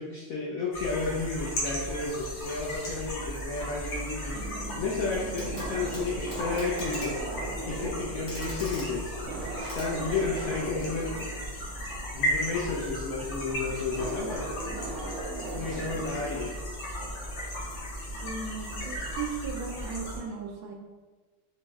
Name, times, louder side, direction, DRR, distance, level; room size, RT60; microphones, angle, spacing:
voice 1, 0.0-4.4 4.8-7.1 7.7-9.1 9.7-11.1 12.1-14.5 15.5-16.5, left 4 dB, 90° left, -4 dB, 0.7 m, -32 dB
sound 1, 0.7-20.2, equal, 65° left, 1.8 m, -36 dB
sound 2, 4.3-19.2, right 2 dB, 90° right, 1.5 m, -40 dB
Clock, 5.3-5.7 5.9-10.6 11.9-12.0, equal, 45° left, 1.6 m, -42 dB
voice 2, 18.1-20.7, right 5 dB, 70° right, 1 dB, 1.3 m, -37 dB
4.8 x 3.0 x 3.5 m, 1.3 s
omnidirectional pair, 2.3 m